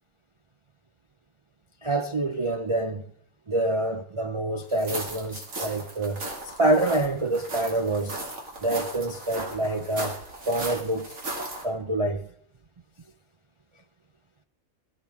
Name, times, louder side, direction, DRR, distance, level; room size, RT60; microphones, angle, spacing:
voice 1, 1.8-3.0 3.5-8.2 8.6-10.2 10.5-11.1 11.6-12.3, right 2 dB, 40° right, 0.4 m, -26 dB
sound 1, 4.7-11.6, right 2 dB, 65° right, 2.7 m, -36 dB
17.5 x 14.0 x 3.6 m
omnidirectional pair, 1.5 m